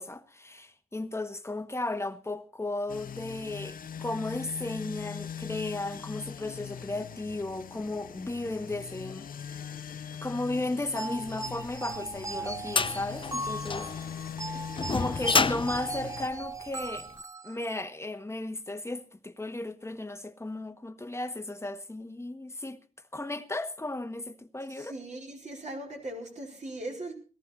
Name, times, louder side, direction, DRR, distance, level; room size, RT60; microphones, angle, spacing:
voice 1, 0.0-9.7 10.2-13.9 14.9-17.1 17.4-22.8 23.1-24.9, left 2 dB, 20° left, 1.4 m, -35 dB
sound 1, 2.9-16.3, left 8 dB, 75° left, 0.6 m, -41 dB
sound 2, 11.0-17.8, right 3 dB, 20° right, 0.6 m, -38 dB
sound 3, 11.7-17.0, left 4 dB, 35° left, 0.6 m, -30 dB
voice 2, 24.7-27.1, right 1 dB, 55° right, 4.4 m, -39 dB
18.0 x 14.5 x 4.2 m
wide cardioid pair, 80°, 15 cm